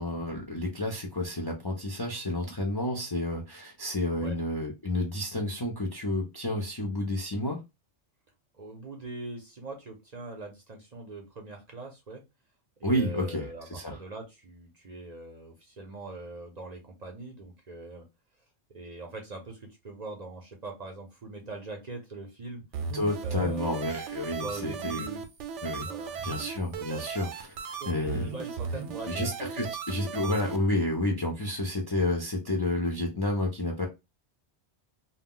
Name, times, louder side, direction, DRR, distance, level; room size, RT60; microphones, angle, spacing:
voice 1, 0.0-7.6 12.8-14.0 22.9-25.0 25.6-25.9 26.2-28.2 29.1-33.9, left 1 dB, 35° left, 1 dB, 0.4 m, -30 dB
voice 2, 8.5-12.2 12.8-18.0 18.7-22.9 23.2-23.9 24.3-25.2 25.9-26.4 26.8-26.9 27.8-29.3 29.6-29.7, right 2 dB, 45° right, 2 dB, 0.6 m, -42 dB
sound 1, 22.7-30.6, right 6 dB, 85° right, 0.9 m, -37 dB
2.3 x 2.1 x 3.6 m, 0.24 s
omnidirectional pair, 1.2 m